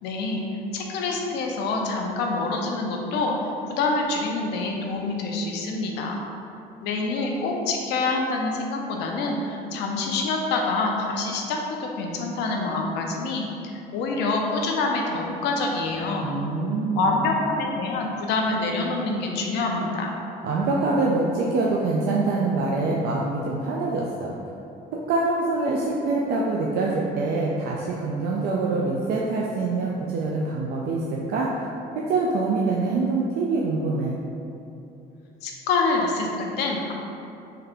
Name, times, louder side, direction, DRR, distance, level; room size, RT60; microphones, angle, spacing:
voice 1, 0.0-0.4 0.7-3.3 3.7-6.2 6.8-16.3 17.0-20.1 35.4-36.9, left 3 dB, 90° left, 1 dB, 0.6 m, -26 dB
voice 2, 16.2-17.2 20.4-24.3 24.9-31.7 32.0-34.2, right 3 dB, 75° right, -3 dB, 0.4 m, -25 dB
3.7 x 2.8 x 3.4 m, 2.7 s
cardioid pair, 110°, 17 cm